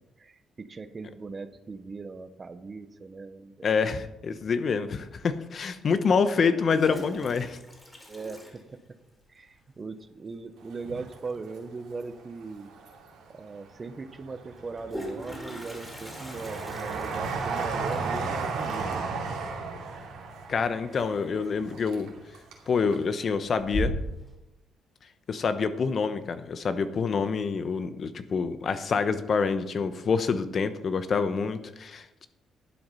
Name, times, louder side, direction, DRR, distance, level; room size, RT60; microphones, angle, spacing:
voice 1, 0.2-3.7 8.1-8.8 9.3-12.7 13.3-19.0, right 4 dB, 35° right, 12 dB, 0.9 m, -39 dB
voice 2, 3.6-7.6 20.5-22.1 22.7-23.9 25.3-32.3, left 5 dB, 50° left, 11 dB, 0.9 m, -27 dB
Toilet flush, 5.2-5.3 6.5-9.3 9.6-9.7 10.0-10.1 10.3-10.7 12.4-12.5 12.9-13.0 14.5-21.2 21.5-22.0 22.4-22.9 23.3-24.3, equal, 15° left, 3.5 m, -39 dB
Train, 10.7-12.0 12.4-13.4 13.9-22.7 22.9-23.0, right 4 dB, 85° right, 2.6 m, -34 dB
11.5 x 7.9 x 5.6 m, 0.96 s
cardioid pair, 90°, 0 cm